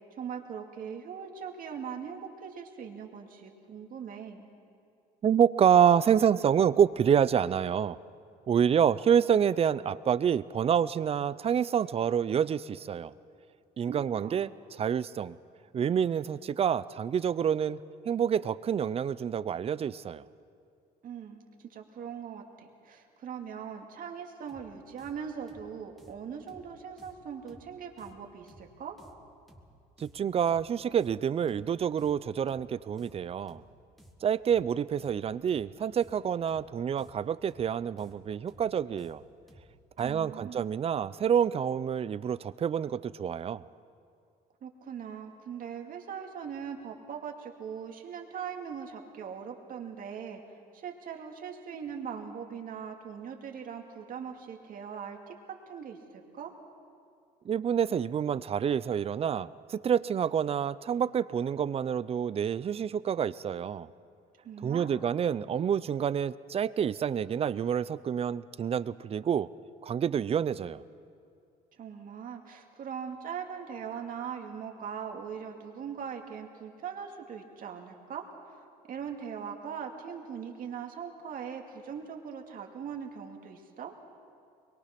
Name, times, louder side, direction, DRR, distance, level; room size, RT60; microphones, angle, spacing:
voice 1, 0.2-4.5 13.9-14.4 21.0-21.4 21.7-29.0 40.0-40.7 44.6-50.4 50.7-56.5 64.4-64.9 71.8-78.3 78.9-83.9, right 7 dB, 55° right, 3 dB, 2.3 m, -40 dB
voice 2, 5.2-8.0 8.5-13.1 13.8-14.5 14.8-15.4 15.7-17.8 18.1-20.2 30.0-33.6 34.2-39.2 40.0-43.6 57.5-63.9 64.6-69.5 69.8-70.8, right 8 dB, 35° right, 18 dB, 0.5 m, -27 dB
sound 1, 24.5-40.4, equal, ahead, 1.8 m, -58 dB
23.0 x 22.5 x 5.9 m, 2.4 s
cardioid pair, 110°, 17 cm